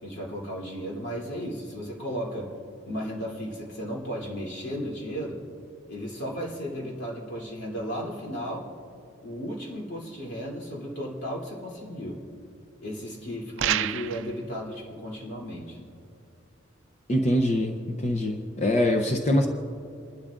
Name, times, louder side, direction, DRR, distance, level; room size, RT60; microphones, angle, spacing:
voice 1, 0.0-2.5 2.8-5.4 5.9-8.7 9.2-12.2 12.8-15.9, equal, 60° left, -4 dB, 3.1 m, -34 dB
sound 1, 13.6-14.3, right 10 dB, 65° right, 0.4 m, -27 dB
voice 2, 17.1-19.5, left 1 dB, 35° left, 3 dB, 0.7 m, -24 dB
27.5 x 12.5 x 2.5 m, 2.6 s
head